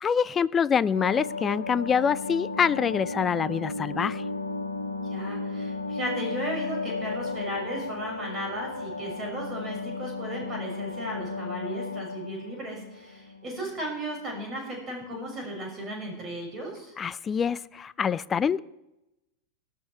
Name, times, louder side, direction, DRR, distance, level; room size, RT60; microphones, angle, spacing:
voice 1, 0.0-4.3 17.0-18.6, left 7 dB, 20° left, 19 dB, 0.4 m, -25 dB
sound 1, 0.9-14.0 14.3-14.4, left 3 dB, 85° left, 1.6 m, -34 dB
voice 2, 5.1-16.9, right 1 dB, 25° right, 0 dB, 6.6 m, -35 dB
18.5 x 12.5 x 4.5 m, 0.93 s
figure-of-eight pair, 90°, 0 cm